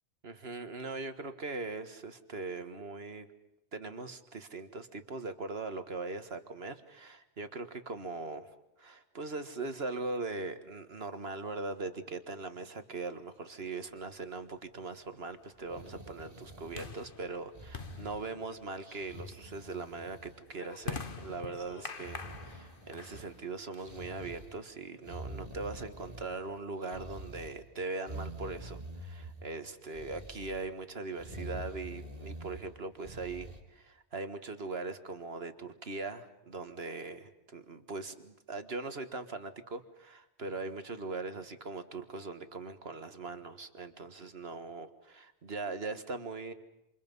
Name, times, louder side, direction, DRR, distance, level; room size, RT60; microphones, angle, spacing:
voice 1, 0.2-3.3 3.7-46.5, right 3 dB, 60° right, 9 dB, 1.9 m, -40 dB
sound 1, 14.1-24.4, left 5 dB, 50° left, 1.4 m, -47 dB
sound 2, 15.6-17.2 17.5-18.4 18.8-20.4 20.7-21.4 21.9-23.4 23.8-24.6 25.0-26.5 26.8-27.6 28.0-29.5 29.9-30.7 31.2-32.6 33.0-33.6, right 1 dB, 35° right, 2.7 m, -46 dB
28.0 x 27.5 x 5.5 m, 0.87 s
omnidirectional pair, 1.1 m